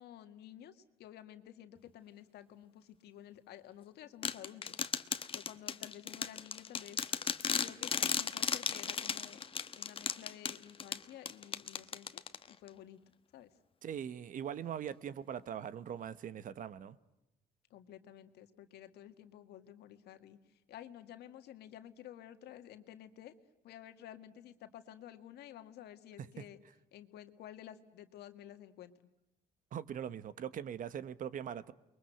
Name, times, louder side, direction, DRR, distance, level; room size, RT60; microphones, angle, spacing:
voice 1, 0.0-4.8 5.1-7.0 7.6-9.5 9.8-13.0 13.3-13.5 17.7-23.3 23.6-26.6 26.9-28.9, left 11 dB, 75° left, 1.9 m, -52 dB
sound 1, 4.2-12.7, left 6 dB, 30° left, 1.1 m, -36 dB
voice 2, 13.8-17.0 26.2-26.3 29.7-31.7, right 9 dB, 50° right, 1.1 m, -41 dB
29.0 x 22.5 x 7.9 m
cardioid pair, 110°, 17 cm